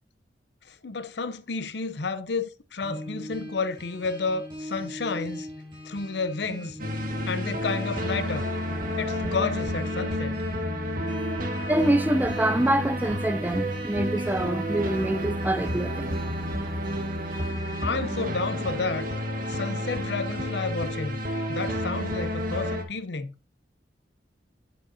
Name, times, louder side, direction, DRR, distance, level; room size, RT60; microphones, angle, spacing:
voice 1, 0.7-5.5 5.8-6.8 7.3-8.4 9.0-10.4 11.3-11.4 17.8-19.1 19.5-21.2 21.5-23.3, left 4 dB, 70° left, 0.7 m, -31 dB
sound 1, 2.8-18.2, left 1 dB, 30° right, 4.3 m, -41 dB
sound 2, 6.8-22.8, equal, 55° right, 1.6 m, -30 dB
voice 2, 11.7-16.2, right 1 dB, 10° right, 0.5 m, -25 dB
9.0 x 7.5 x 2.8 m
head